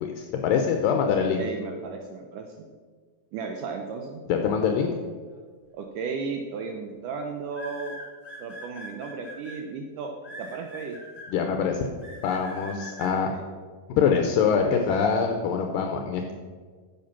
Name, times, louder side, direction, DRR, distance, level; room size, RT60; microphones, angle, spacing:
voice 1, 0.0-1.4 4.3-4.9 11.3-11.9 12.2-13.3 13.9-16.3, left 6 dB, 75° left, 4 dB, 2.3 m, -24 dB
voice 2, 1.4-2.7 3.3-4.2 5.7-8.0 8.4-10.1 10.4-11.0 13.3-13.4 14.4-14.7, right 5 dB, 75° right, 3 dB, 2.1 m, -35 dB
sound 1, 6.0-6.3 7.5-9.5 10.2-11.3 12.0-13.1, left 1 dB, 15° left, 3.0 m, -42 dB
10.5 x 7.5 x 5.8 m, 1.6 s
omnidirectional pair, 4.2 m